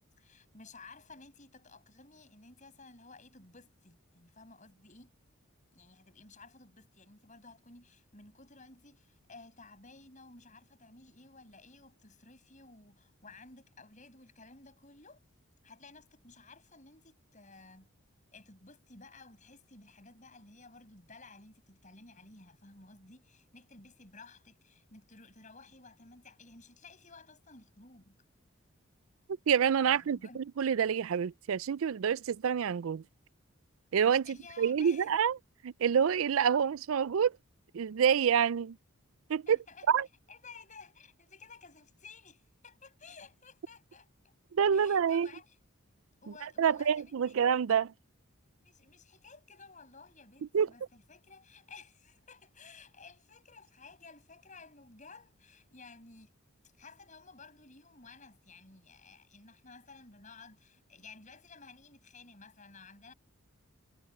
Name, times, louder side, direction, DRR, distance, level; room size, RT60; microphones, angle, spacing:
voice 1, 0.2-5.1 5.7-15.2 15.6-17.9 18.3-28.2 29.9-30.4 34.2-35.1 39.5-39.9 40.3-44.3 44.7-45.6 46.2-47.4 48.6-56.3 56.7-63.1, left 3 dB, 35° left, 7.2 m, -55 dB
voice 2, 29.5-33.0 33.9-35.4 35.6-37.4 37.7-38.8 39.3-39.6 39.9-40.1 44.5-45.3 46.6-47.9 50.5-50.7, right 7 dB, 70° right, 0.4 m, -27 dB
head